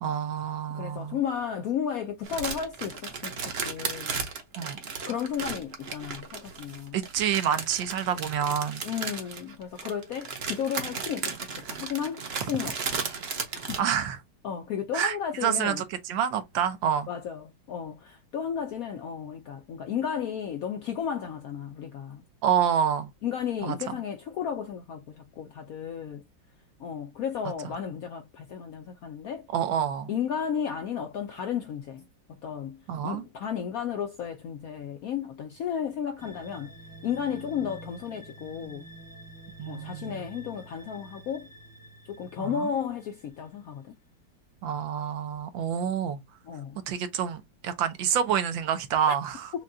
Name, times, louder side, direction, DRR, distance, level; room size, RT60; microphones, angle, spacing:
voice 1, 0.0-1.2 4.6-4.8 6.9-8.8 13.8-14.2 14.9-15.2 15.4-17.1 22.4-23.1 23.6-23.7 29.5-30.1 32.9-33.2 39.6-40.3 42.4-42.7 44.6-46.2 46.9-49.5, right 8 dB, 80° right, 1.5 m, -28 dB
voice 2, 0.7-4.2 5.0-7.0 8.8-13.0 13.7-13.8 14.4-15.8 17.1-22.2 23.2-26.2 26.8-29.5 30.1-32.1 32.4-36.7 37.0-38.9 39.7-41.5 42.0-43.9 46.4-46.8 49.1-49.2, left 8 dB, 75° left, 0.8 m, -33 dB
sound 1, 2.2-13.8, right 5 dB, 50° right, 0.8 m, -35 dB
sound 2, 36.2-43.7, right 2 dB, 15° left, 0.7 m, -48 dB
6.2 x 2.2 x 2.6 m
omnidirectional pair, 2.1 m